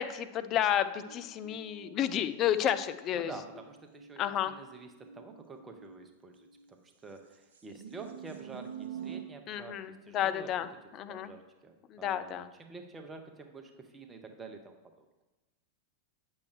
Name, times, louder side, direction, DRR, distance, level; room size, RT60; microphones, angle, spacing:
voice 1, 0.0-3.3 4.2-4.5 9.5-10.7 10.9-11.3 11.9-12.5, left 10 dB, 35° left, 11 dB, 0.4 m, -31 dB
sound 1, 0.9-6.7 7.3-9.2, right 8 dB, 60° right, 0.6 m, -48 dB
voice 2, 3.1-15.1, right 3 dB, 15° right, 6 dB, 0.8 m, -48 dB
8.3 x 6.3 x 3.1 m, 1.1 s
figure-of-eight pair, 90°, 0 cm